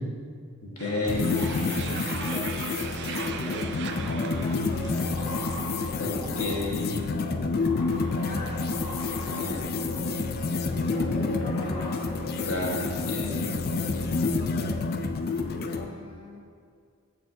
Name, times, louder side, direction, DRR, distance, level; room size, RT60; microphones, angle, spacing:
voice 1, 0.6-1.3 6.0-6.9 9.2-9.6 12.4-13.5, left 1 dB, 80° left, -3 dB, 1.6 m, -31 dB
sound 1, 0.8-5.7, right 6 dB, 55° right, 0.4 m, -39 dB
sound 2, 1.1-15.9, left 3 dB, 45° left, 0.4 m, -29 dB
voice 2, 1.3-2.6 3.0-5.4 8.1-8.7 9.7-12.2 14.3-14.8 15.3-16.4, left 1 dB, 25° left, -3 dB, 0.8 m, -41 dB
sound 3, 4.9-14.4, left 1 dB, 60° left, 1.3 m, -39 dB
13.5 x 4.6 x 2.8 m, 2.2 s
head